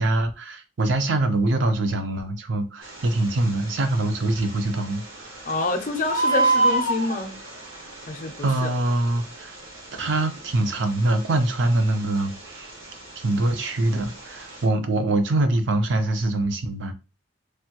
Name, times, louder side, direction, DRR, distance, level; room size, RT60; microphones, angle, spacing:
voice 1, 0.0-5.3 8.4-9.6 9.9-12.7 13.2-16.9, right 2 dB, 65° right, 0.5 m, -24 dB
Bird, 2.8-14.6, right 2 dB, 85° right, 1.4 m, -31 dB
voice 2, 5.4-7.3 8.1-8.7, left 2 dB, 40° left, 0.5 m, -27 dB
3.3 x 2.2 x 2.9 m
head